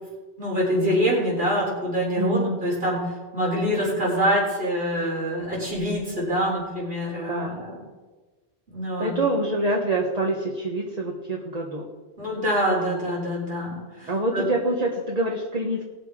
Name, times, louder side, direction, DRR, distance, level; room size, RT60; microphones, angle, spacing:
voice 1, 0.4-7.8 8.7-9.1 12.2-14.4, equal, 60° right, -4 dB, 4.1 m, -25 dB
voice 2, 2.2-2.6 7.3-7.8 9.0-11.9 14.1-15.8, right 1 dB, 40° right, -1 dB, 1.4 m, -26 dB
20.0 x 6.8 x 4.9 m, 1.3 s
omnidirectional pair, 1.1 m